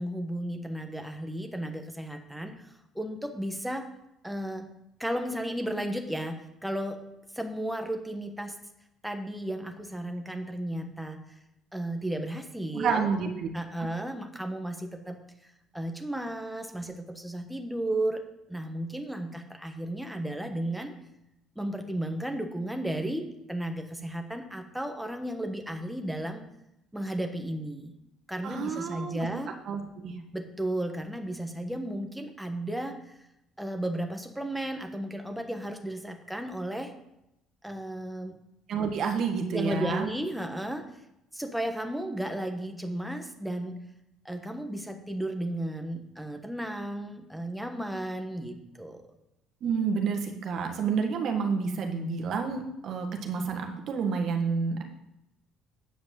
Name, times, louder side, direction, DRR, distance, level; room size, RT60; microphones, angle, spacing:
voice 1, 0.0-3.9 4.2-4.7 5.0-7.0 7.3-8.5 9.0-11.4 11.7-13.1 13.5-15.2 15.7-18.2 18.5-20.9 21.5-26.5 26.9-27.9 28.3-29.5 30.3-33.2 33.6-36.9 37.6-38.4 39.5-40.9 41.3-43.8 44.2-49.0, right 1 dB, 5° right, 5 dB, 1.3 m, -34 dB
voice 2, 12.7-13.5 13.8-13.9 28.4-29.3 29.7-30.1 38.7-40.1 49.6-54.8, right 5 dB, 60° right, 4 dB, 1.6 m, -29 dB
8.9 x 5.2 x 7.6 m, 0.85 s
supercardioid pair, 90°, 0 cm